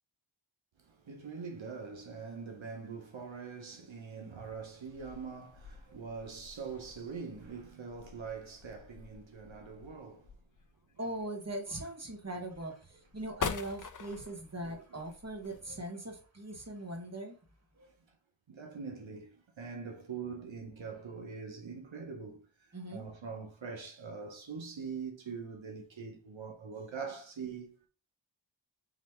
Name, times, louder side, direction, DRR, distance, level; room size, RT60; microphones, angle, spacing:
voice 1, 0.8-10.4 14.6-15.0 17.8-17.9 18.5-27.9, right 5 dB, 90° right, 0.9 m, -43 dB
sound 1, 4.4-15.6, left 6 dB, 45° left, 0.5 m, -45 dB
voice 2, 11.0-17.3 17.8-17.9 22.7-23.0, right 1 dB, 35° right, 1.5 m, -40 dB
4.1 x 3.1 x 4.2 m
wide cardioid pair, 50°, 45 cm